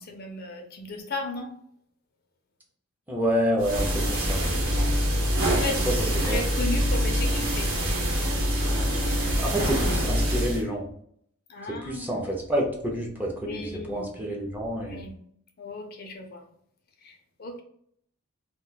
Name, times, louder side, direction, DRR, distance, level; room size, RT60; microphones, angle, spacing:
voice 1, 0.0-1.5 5.2-5.9 6.2-7.7 11.5-12.3 13.4-14.1 14.8-15.1 15.6-16.5 17.0-17.6, left 2 dB, 45° left, 3 dB, 0.5 m, -35 dB
voice 2, 3.1-4.6 5.9-6.4 9.4-10.9 11.7-15.0, equal, 10° right, -2 dB, 0.5 m, -28 dB
sound 1, 3.6-10.6, equal, 70° right, 0.9 m, -25 dB
2.3 x 2.2 x 3.9 m, 0.67 s
head